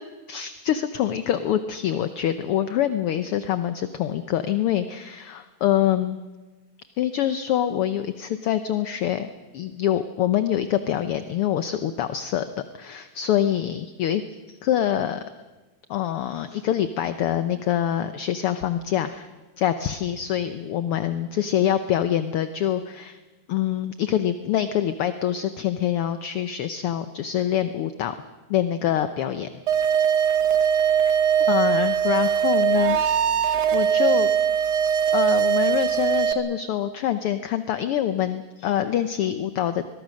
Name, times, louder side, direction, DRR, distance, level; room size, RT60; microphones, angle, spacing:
voice 1, 0.3-6.2 7.0-12.5 12.7-14.2 14.5-15.2 15.9-19.3 19.6-23.2 23.5-28.1 28.5-29.5 31.0-31.1 31.5-33.0 33.7-34.3 35.1-39.9, left 11 dB, 70° left, 11 dB, 1.4 m, -25 dB
sound 1, 29.7-36.3, right 8 dB, 60° right, 1.0 m, -21 dB
23.0 x 22.5 x 6.4 m, 1.2 s
omnidirectional pair, 3.4 m